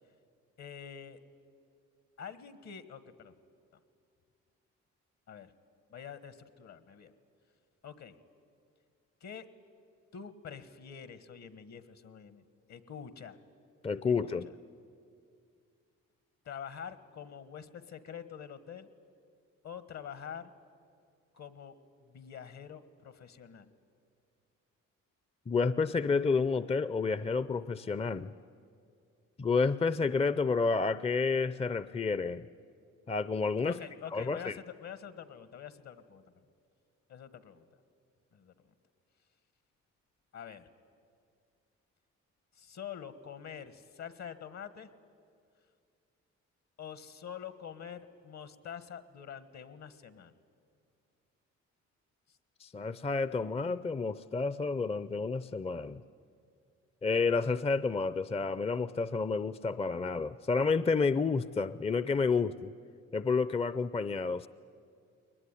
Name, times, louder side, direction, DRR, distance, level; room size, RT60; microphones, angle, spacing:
voice 1, 0.6-1.2 2.2-3.3 5.3-5.5 5.9-7.1 7.8-8.2 9.2-9.5 10.1-12.4 12.7-13.4 14.1-14.4 16.4-18.9 19.6-20.5 21.3-21.7 22.0-23.7 33.6-36.2 37.1-37.6 38.3-38.5 40.3-40.7 42.5-44.9 46.8-50.3, left 8 dB, 60° left, 13 dB, 1.5 m, -46 dB
voice 2, 13.8-14.5 25.5-28.3 29.4-32.5 33.1-33.8 34.1-34.6 52.6-56.0 57.0-62.7 63.1-64.5, left 4 dB, 20° left, 16 dB, 0.5 m, -30 dB
22.0 x 19.5 x 10.0 m, 2.3 s
cardioid pair, 70°, 31 cm